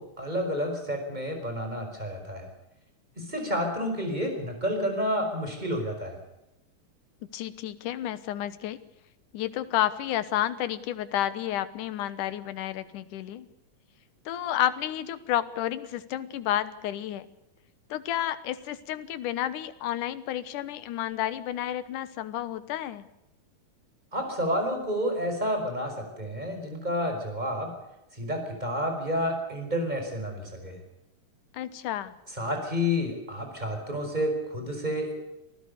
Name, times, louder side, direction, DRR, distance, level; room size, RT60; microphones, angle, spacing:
voice 1, 0.0-2.5 3.2-6.2 24.1-27.7 28.1-30.8 32.3-35.1, equal, 10° right, 4 dB, 5.5 m, -30 dB
voice 2, 7.3-8.8 9.3-13.5 14.3-17.3 17.9-23.1 31.5-32.1, left 12 dB, 75° left, 14 dB, 2.6 m, -31 dB
26.0 x 16.5 x 6.7 m, 0.90 s
omnidirectional pair, 3.7 m